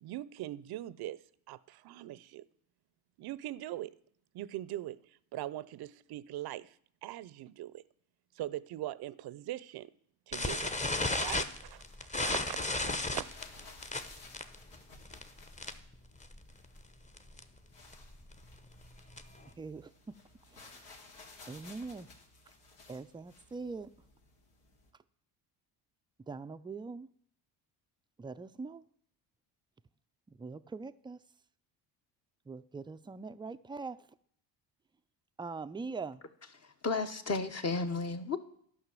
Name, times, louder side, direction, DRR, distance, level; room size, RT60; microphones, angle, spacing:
voice 1, 0.0-1.2 1.5-2.5 3.2-4.0 4.3-6.8 7.0-7.8 8.4-9.9 10.3-10.7 11.1-13.3, right 14 dB, 60° right, 0.6 m, -41 dB
sound 1, 10.3-24.9, left 3 dB, 80° left, 2.6 m, -57 dB
sound 2, 10.3-15.9 16.2-16.5 16.8-16.9 17.2-17.4 17.9-19.5, left 2 dB, 15° left, 0.9 m, -34 dB
voice 2, 19.6-20.1 20.5-21.0 21.5-22.1 22.9-23.9 26.2-27.1 28.2-28.8 30.3-31.2 32.5-34.1 35.4-36.2, right 4 dB, 10° right, 0.4 m, -42 dB
voice 3, 36.8-38.4, left 4 dB, 35° left, 1.2 m, -32 dB
11.0 x 5.6 x 7.6 m
supercardioid pair, 80°, 43 cm